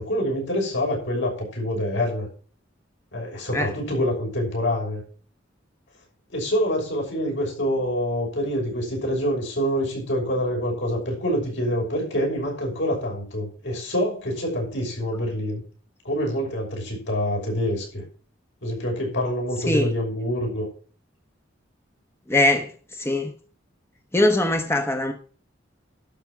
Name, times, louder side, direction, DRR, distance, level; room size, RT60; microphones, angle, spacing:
voice 1, 0.0-2.3 3.1-5.0 6.3-15.6 16.0-18.1 18.6-20.7, equal, 70° left, 0 dB, 6.2 m, -26 dB
voice 2, 22.3-23.3 24.1-25.1, left 1 dB, 15° left, 5 dB, 1.0 m, -22 dB
12.0 x 6.6 x 6.1 m, 0.41 s
head